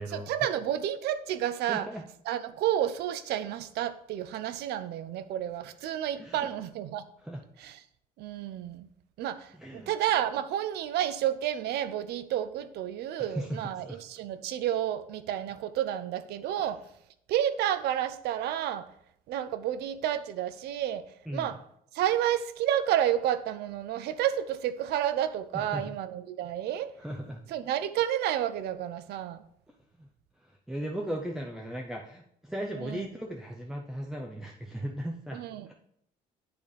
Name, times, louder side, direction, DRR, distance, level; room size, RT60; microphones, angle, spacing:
voice 1, 0.1-1.9 2.3-7.1 7.6-7.8 8.2-8.9 9.2-16.8 17.3-18.9 19.3-21.0 21.3-21.6 21.9-26.9 27.5-29.4 32.8-33.1 35.3-35.7, right 11 dB, 75° right, 13 dB, 0.6 m, -30 dB
voice 2, 1.7-2.0 6.2-6.5 7.2-7.4 9.6-9.9 13.3-13.5 13.8-14.0 21.3-21.5 25.5-25.9 27.0-27.4 30.0-30.1 30.7-35.4, right 1 dB, 5° right, 0 dB, 0.6 m, -37 dB
8.6 x 3.3 x 5.5 m, 0.72 s
cardioid pair, 110°, 17 cm